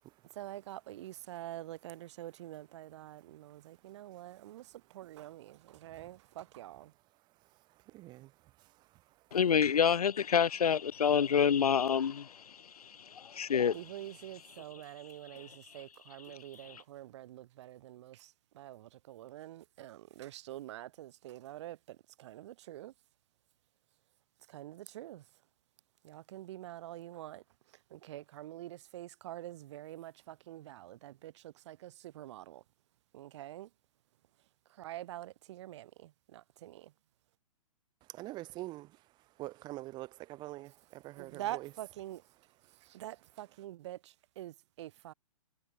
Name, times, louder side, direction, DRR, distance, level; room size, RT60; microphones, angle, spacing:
voice 1, 0.3-6.9 13.7-22.9 24.5-25.2 26.0-27.4 27.9-32.6 33.1-33.7 34.8-36.9 41.1-42.2 42.8-45.1, right 14 dB, 50° right, 1.1 m, -46 dB
voice 2, 7.9-8.3 38.1-38.9 39.4-41.7, right 18 dB, 25° right, 0.7 m, -44 dB
voice 3, 9.3-13.8 15.3-15.6 16.3-16.4 16.7-16.8, left 7 dB, 90° left, 0.5 m, -28 dB
hypercardioid pair, 130°, 19 cm